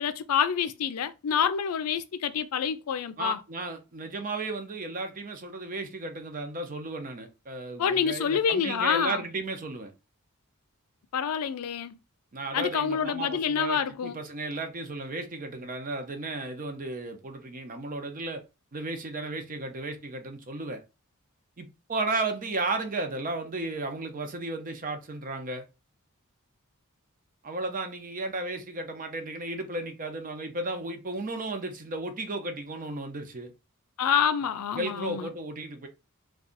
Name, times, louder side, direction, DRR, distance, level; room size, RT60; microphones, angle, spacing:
voice 1, 0.0-3.4 7.8-9.2 11.1-12.0 12.5-14.2 34.0-35.3, left 7 dB, 90° left, 0.4 m, -27 dB
voice 2, 3.2-9.9 12.3-18.4 18.7-20.8 21.6-25.6 27.4-33.5 34.8-35.9, right 2 dB, 40° right, 0.7 m, -34 dB
2.6 x 2.3 x 3.8 m
head